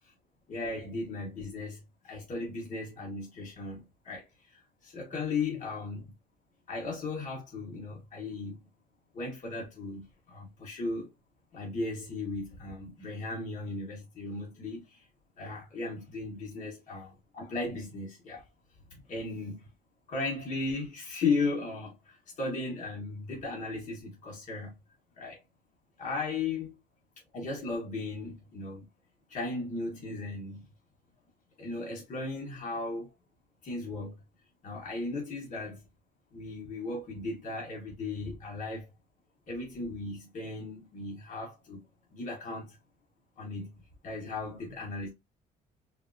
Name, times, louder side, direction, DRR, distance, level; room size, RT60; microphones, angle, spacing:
voice 1, 0.5-1.8 2.0-6.1 6.7-8.6 9.1-11.1 11.5-15.0 15.4-18.4 19.1-19.7 20.1-24.7 25.2-25.4 26.0-26.7 27.3-28.9 29.3-30.6 31.6-33.1 33.6-34.1 34.6-35.8 36.3-38.9 39.5-41.8 42.1-42.8 43.4-45.1, left 3 dB, 50° left, 1.5 m, -36 dB
4.0 x 2.0 x 2.6 m
cardioid pair, 110°, 17 cm